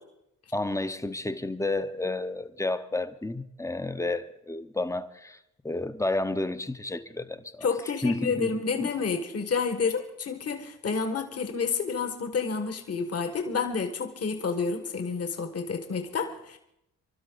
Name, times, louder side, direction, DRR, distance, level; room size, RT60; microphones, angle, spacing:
voice 1, 0.5-5.4 5.6-7.7 8.0-8.9, left 2 dB, 10° left, 0.9 m, -31 dB
voice 2, 7.6-16.6, left 5 dB, 45° left, 1.6 m, -29 dB
25.5 x 12.0 x 4.0 m
supercardioid pair, 55°, 35 cm